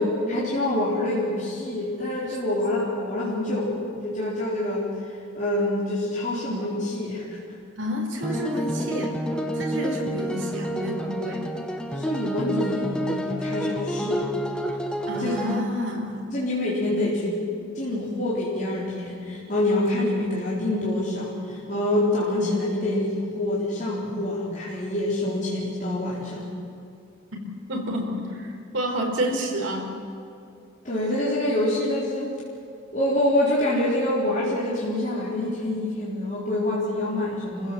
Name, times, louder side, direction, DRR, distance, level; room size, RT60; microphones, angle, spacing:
voice 1, 0.0-7.4 11.9-14.3 15.2-15.3 16.3-17.4 17.7-26.5 30.8-32.3 32.9-37.7, left 1 dB, 40° left, -7 dB, 4.2 m, -26 dB
voice 2, 7.8-9.2 9.5-11.5 15.1-16.2 27.7-29.9, equal, 75° right, 1 dB, 4.4 m, -29 dB
sound 1, 8.2-15.6, equal, 5° left, 1.2 m, -29 dB
28.5 x 15.5 x 7.7 m, 2.5 s
head